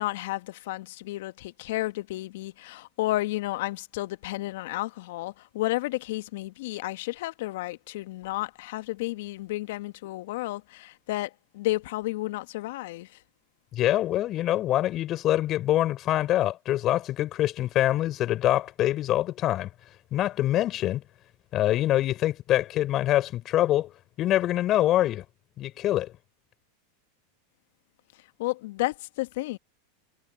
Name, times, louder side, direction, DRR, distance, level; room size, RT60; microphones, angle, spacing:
voice 1, 0.0-13.1 28.4-29.6, left 18 dB, 65° left, 1.5 m, -32 dB
voice 2, 13.7-19.7 20.1-21.0 21.5-23.9 24.2-25.2 25.6-26.1, left 13 dB, 40° left, 5.5 m, -25 dB
hypercardioid pair, 95°, 0 cm